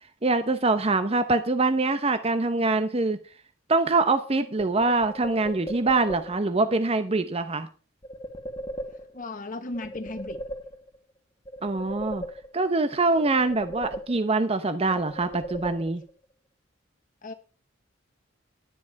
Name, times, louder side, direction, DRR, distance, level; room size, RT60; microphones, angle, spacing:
voice 1, 0.2-3.2 3.7-7.7 11.6-12.2 12.5-16.0, right 3 dB, 30° right, 0.8 m, -24 dB
sound 1, 4.6-6.6 8.0-9.4 9.7-11.1 11.4-12.8 13.2-14.5 14.9-16.2, right 1 dB, 25° left, 1.7 m, -38 dB
voice 2, 9.1-10.4 17.2-17.3, left 2 dB, 45° left, 1.0 m, -35 dB
12.0 x 10.0 x 4.6 m
head